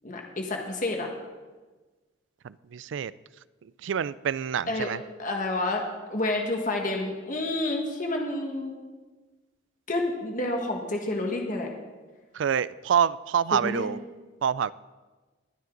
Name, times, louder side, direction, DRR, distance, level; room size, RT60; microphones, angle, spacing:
voice 1, 0.0-1.1 4.7-4.9 5.2-5.8 6.1-8.8 9.9-11.7 13.5-13.9, left 2 dB, 45° left, 1.7 m, -29 dB
voice 2, 2.4-3.1 3.8-5.0 12.3-14.0 14.4-14.7, right 8 dB, 70° right, 0.4 m, -26 dB
21.0 x 9.5 x 3.9 m
head